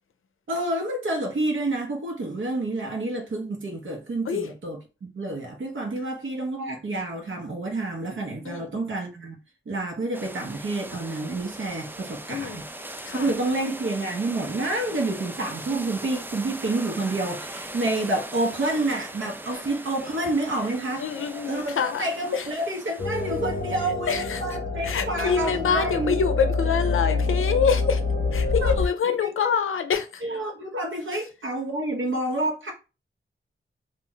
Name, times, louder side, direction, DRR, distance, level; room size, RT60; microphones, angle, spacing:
voice 1, 0.5-4.8 5.1-9.4 9.7-12.6 13.1-21.1 21.5-26.2 28.6-28.7 29.0-29.5 30.2-32.7, right 2 dB, 70° right, 0.9 m, -29 dB
sound 1, 10.1-23.7, right 1 dB, 10° right, 0.4 m, -39 dB
voice 2, 12.3-12.7 13.0-13.3 21.0-22.0 22.3-22.5 24.1-24.4 24.8-28.0 28.3-30.2 31.1-31.2, left 6 dB, 80° left, 0.5 m, -26 dB
sound 2, 23.0-28.9, left 3 dB, 45° left, 0.7 m, -26 dB
2.4 x 2.1 x 3.8 m
cardioid pair, 50°, 21 cm